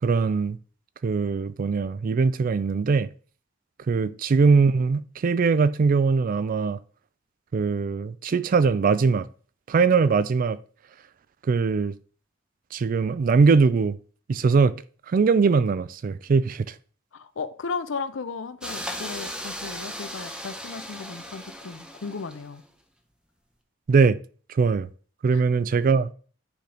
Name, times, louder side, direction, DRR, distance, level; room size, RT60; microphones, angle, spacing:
voice 1, 0.0-0.6 1.0-3.1 3.9-6.8 7.5-9.3 9.7-10.6 11.5-11.9 12.7-14.0 14.3-14.8 15.1-16.7 23.9-24.2 24.5-24.9 25.2-26.1, right 4 dB, 45° right, 0.3 m, -21 dB
voice 2, 17.1-22.6 25.3-25.4, left 5 dB, 85° left, 0.6 m, -35 dB
sound 1, 18.6-22.7, equal, 5° right, 0.7 m, -37 dB
9.9 x 3.4 x 3.8 m
head